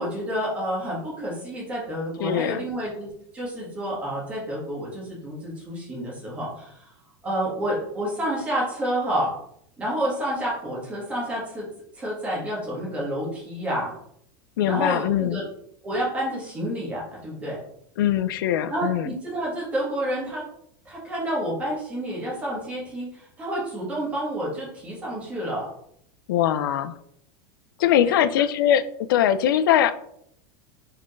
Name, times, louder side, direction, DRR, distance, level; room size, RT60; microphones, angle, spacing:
voice 1, 0.0-6.9 7.2-9.3 9.8-11.7 11.9-13.9 14.6-15.4 15.8-17.6 18.7-20.5 20.8-25.7 28.0-28.1, right 1 dB, 10° right, -5 dB, 1.5 m, -29 dB
voice 2, 2.2-2.6 14.6-15.4 18.0-19.1 26.3-26.9 27.8-29.9, left 10 dB, 70° left, 12 dB, 0.4 m, -22 dB
4.6 x 3.5 x 3.1 m, 0.71 s
supercardioid pair, 175°, 12 cm